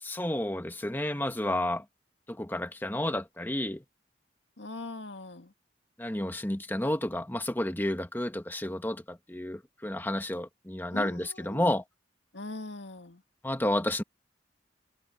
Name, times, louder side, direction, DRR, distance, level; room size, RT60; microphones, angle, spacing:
voice 1, 0.0-1.8 2.3-3.8 6.0-11.8 13.4-14.0, left 1 dB, 10° left, 1.3 m, -31 dB
voice 2, 4.6-5.5 10.9-11.7 12.3-13.2, left 2 dB, 80° left, 1.7 m, -41 dB
head